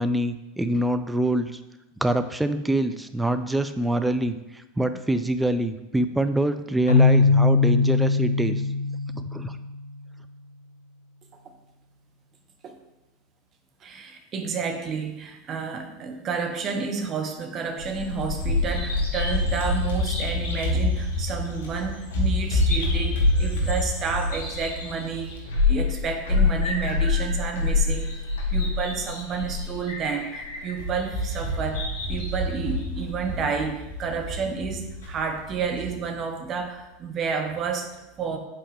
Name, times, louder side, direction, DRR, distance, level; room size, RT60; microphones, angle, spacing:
voice 1, 0.0-1.6 2.0-4.4 4.8-8.6 9.1-9.6, right 1 dB, 5° right, 9 dB, 0.5 m, -25 dB
Keyboard (musical), 6.9-9.8, left 4 dB, 90° left, 0.6 m, -20 dB
voice 2, 13.8-25.3 25.7-28.1 28.5-38.4, right 5 dB, 35° right, 5 dB, 1.0 m, -30 dB
Bird vocalization bird call bird song, 17.8-35.9, left 3 dB, 65° left, 1.5 m, -26 dB
7.8 x 4.2 x 3.5 m, 0.96 s
hypercardioid pair, 85°, 0 cm